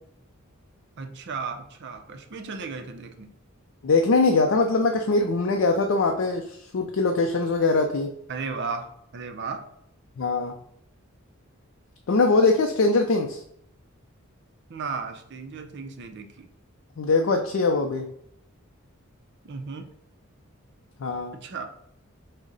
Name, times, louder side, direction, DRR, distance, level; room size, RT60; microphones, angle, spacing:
voice 1, 1.0-3.3 8.3-9.6 14.7-16.5 19.4-19.9 21.3-21.6, right 4 dB, 55° right, 6 dB, 0.5 m, -35 dB
voice 2, 3.8-8.1 10.2-10.6 12.1-13.4 17.0-18.1 21.0-21.4, left 3 dB, 60° left, 3 dB, 0.4 m, -22 dB
6.3 x 2.1 x 3.9 m, 0.72 s
head